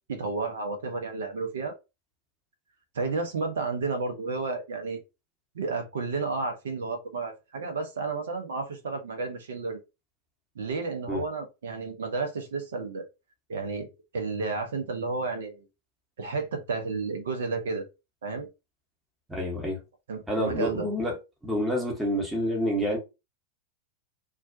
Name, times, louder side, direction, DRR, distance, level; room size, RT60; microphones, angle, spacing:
voice 1, 0.1-1.7 2.9-5.0 5.5-9.8 10.5-13.1 13.5-15.7 16.2-17.9 18.2-18.5 20.1-20.9, right 4 dB, 65° right, 0.7 m, -32 dB
voice 2, 19.3-19.8 20.3-21.1 21.4-23.0, equal, 5° right, 0.8 m, -28 dB
2.3 x 2.2 x 2.5 m
figure-of-eight pair, 90°, 0 cm